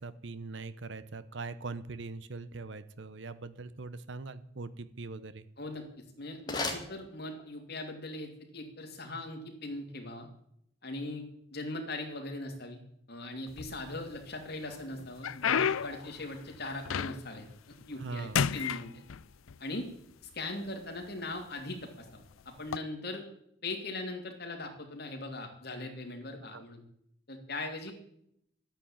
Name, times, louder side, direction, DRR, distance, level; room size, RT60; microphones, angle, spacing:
voice 1, 0.0-5.5 18.0-18.4 26.5-26.6, right 3 dB, 65° right, 13 dB, 0.9 m, -41 dB
sound 1, 5.6-7.7, left 3 dB, 20° left, 1.9 m, -39 dB
voice 2, 6.2-10.3 10.8-11.2 11.5-12.8 13.1-17.4 17.9-19.0 19.6-19.9 20.2-23.2 23.6-26.8 27.3-27.9, left 2 dB, 50° left, 3 dB, 2.9 m, -40 dB
sound 2, 13.5-14.2 14.7-17.5 17.8-18.1 18.3-19.6 20.4-20.5 21.2-21.4 22.6-22.8, left 7 dB, 85° left, 0.5 m, -32 dB
12.5 x 8.9 x 8.8 m, 0.72 s
head